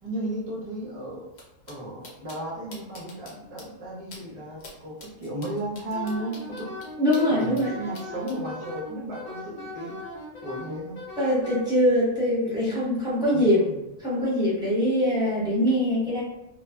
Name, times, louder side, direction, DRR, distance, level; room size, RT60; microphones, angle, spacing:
voice 1, 0.0-1.3 1.7-6.8 7.3-10.0 10.4-11.0 13.3-13.8, right 1 dB, 50° right, -6 dB, 0.4 m, -34 dB
sound 1, 1.3-1.4 1.7-1.8 2.0-2.4 2.7-3.3 3.6-3.7 4.1-4.2 4.6-4.7 5.0-7.6 7.9-8.3, left 3 dB, 60° left, 0.8 m, -45 dB
Wind instrument woodwind instrument, 5.9-11.6, left 2 dB, 85° left, 1.1 m, -39 dB
voice 2, 7.0-7.7 11.2-13.7 14.0-16.2, equal, 5° right, -9 dB, 0.7 m, -23 dB
2.5 x 2.2 x 2.2 m, 0.95 s
omnidirectional pair, 1.5 m